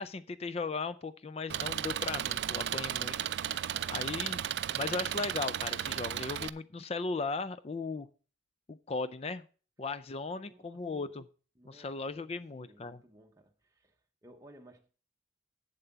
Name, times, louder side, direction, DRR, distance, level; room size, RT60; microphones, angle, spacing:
voice 1, 0.0-4.4 4.7-8.1 8.7-9.4 9.8-11.3 11.7-13.0, left 4 dB, 30° left, 0.4 m, -37 dB
Engine, 1.5-6.5, right 10 dB, 60° right, 0.3 m, -34 dB
voice 2, 10.2-11.1 11.6-14.9, right 1 dB, 15° right, 0.8 m, -59 dB
8.0 x 7.5 x 5.6 m
head